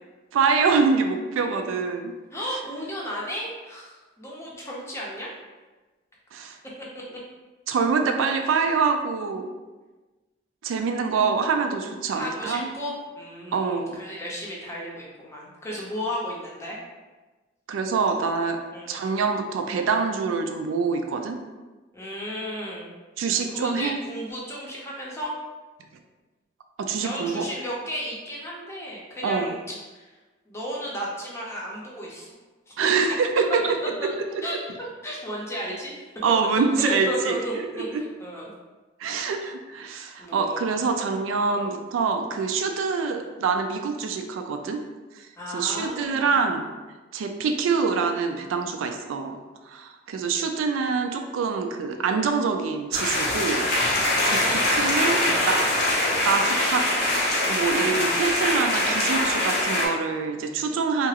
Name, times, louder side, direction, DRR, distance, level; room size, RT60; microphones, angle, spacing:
voice 1, 0.3-2.1 6.3-6.6 7.7-9.5 10.6-12.7 13.5-14.0 17.7-18.6 18.9-21.4 23.2-24.0 26.8-27.4 29.2-29.5 32.8-33.8 36.2-37.4 37.9-38.0 39.0-44.8 45.1-46.7 47.1-53.7 54.2-55.6 56.3-56.9 57.4-61.1, right 5 dB, 85° right, 5 dB, 0.3 m, -25 dB
voice 2, 2.3-5.4 12.1-16.8 18.7-18.9 21.9-23.0 23.3-25.4 27.0-29.6 29.9-30.1 30.5-32.3 32.7-32.8 34.4-34.6 35.0-36.1 36.8-38.5 40.2-40.6 41.4-41.7 45.4-46.3 54.2-54.9 55.2-55.5 56.0-56.2, equal, 15° left, -4 dB, 0.6 m, -34 dB
sound 1, 52.9-59.9, left 1 dB, 55° left, 0.6 m, -23 dB
2.9 x 2.4 x 2.8 m, 1.2 s
head